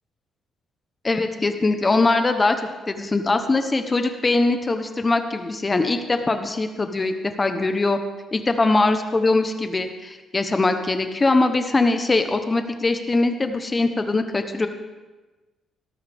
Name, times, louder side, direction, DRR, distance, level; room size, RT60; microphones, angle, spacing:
voice 1, 1.0-2.6 2.9-8.0 8.3-14.7, left 3 dB, 25° left, 7 dB, 1.0 m, -21 dB
17.5 x 13.5 x 3.6 m, 1.2 s
cardioid pair, 90°, 0 cm